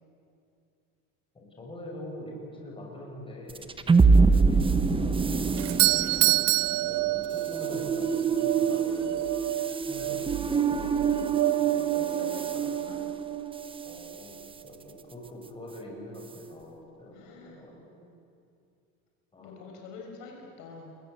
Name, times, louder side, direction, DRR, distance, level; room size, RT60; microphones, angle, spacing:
voice 1, 1.3-3.7 4.2-6.2 6.8-9.3 9.9-10.8 13.8-18.2 19.3-19.7, left 1 dB, 15° left, -2 dB, 6.2 m, -44 dB
sound 1, 3.5-14.0, right 4 dB, 15° right, 1.0 m, -26 dB
voice 2, 4.1-4.4 11.6-13.1 17.1-17.6 19.4-20.9, left 4 dB, 70° left, 0 dB, 5.6 m, -46 dB
sound 2, 5.5-14.7, right 16 dB, 60° right, 0.9 m, -33 dB
Doorbell, 5.6-7.7, right 23 dB, 80° right, 0.5 m, -25 dB
28.0 x 22.0 x 8.1 m, 2.5 s
cardioid pair, 140°, 34 cm